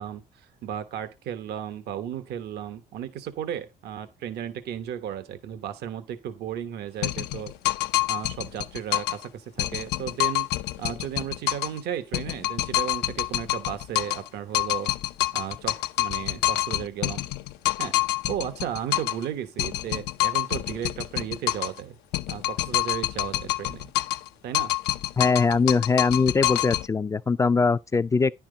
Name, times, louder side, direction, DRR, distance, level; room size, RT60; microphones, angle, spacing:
voice 1, 0.0-7.5 8.1-10.5 10.8-14.9 15.3-17.2 17.8-17.9 18.3-22.0 22.3-23.9 24.4-24.7, right 9 dB, 75° right, 1.0 m, -34 dB
sound 1, 7.0-9.2 9.6-11.8 12.1-14.3 14.5-19.2 19.6-21.8 22.1-24.3 24.5-26.9, left 17 dB, 85° left, 0.6 m, -27 dB
voice 2, 25.2-28.3, left 4 dB, 20° left, 0.4 m, -22 dB
10.0 x 5.8 x 3.8 m
cardioid pair, 110°, 17 cm